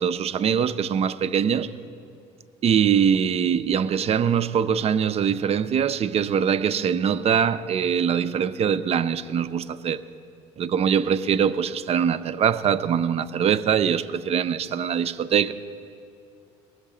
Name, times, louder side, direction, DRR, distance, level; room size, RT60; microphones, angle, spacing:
voice 1, 0.0-1.7 2.6-10.0 10.6-15.5, right 8 dB, 40° right, 0.5 m, -23 dB
19.0 x 6.5 x 4.9 m
supercardioid pair, 75°, 16 cm